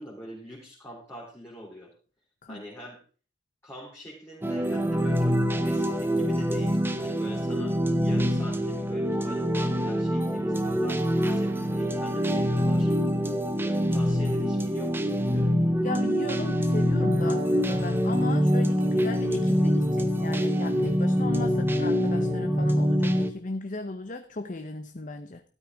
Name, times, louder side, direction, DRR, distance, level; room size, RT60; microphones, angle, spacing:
voice 1, 0.0-1.9 2.5-3.0 3.6-7.8 8.0-13.0 13.6-15.6, left 1 dB, 15° left, -4 dB, 3.2 m, -43 dB
sound 1, 4.4-23.3, equal, 10° right, 1.0 m, -25 dB
voice 2, 15.8-25.4, left 2 dB, 45° left, 7 dB, 0.8 m, -36 dB
13.5 x 12.5 x 3.5 m, 0.38 s
head